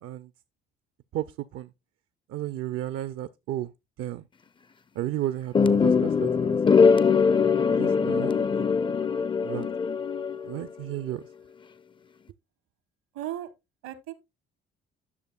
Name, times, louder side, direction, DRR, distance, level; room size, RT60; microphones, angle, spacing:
voice 1, 1.1-1.7 2.3-3.7 4.0-4.2 5.0-6.8 7.7-8.6 9.4-9.7 10.5-11.2, right 13 dB, 50° right, 0.5 m, -33 dB
sound 1, 5.5-10.7, left 5 dB, 20° left, 0.4 m, -22 dB
voice 2, 8.2-8.5 13.1-13.5 13.8-14.1, right 12 dB, 70° right, 1.1 m, -36 dB
11.0 x 6.6 x 2.2 m
hypercardioid pair, 50°, 29 cm